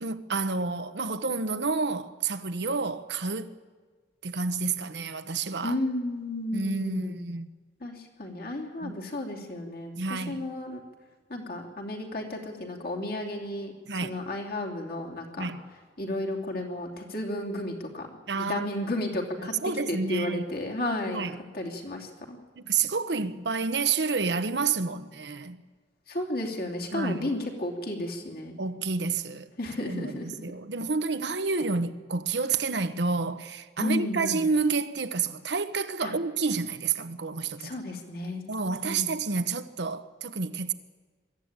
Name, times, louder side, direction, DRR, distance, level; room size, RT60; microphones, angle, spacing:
voice 1, 0.0-3.5 4.2-5.8 6.5-7.5 8.8-9.0 10.0-10.5 13.9-14.2 15.4-15.6 18.3-18.7 19.4-20.5 21.0-21.3 22.6-25.6 26.9-27.3 28.6-29.5 29.8-37.7 38.5-40.7, right 4 dB, 75° right, 1.1 m, -29 dB
voice 2, 5.6-7.1 7.8-10.8 11.3-13.7 14.0-15.5 16.0-18.1 18.3-21.2 21.5-22.4 26.1-28.6 29.6-30.3 33.8-34.4 36.0-36.1 37.6-38.4 38.8-39.1, left 1 dB, 55° left, 3.0 m, -33 dB
22.0 x 14.0 x 8.9 m
head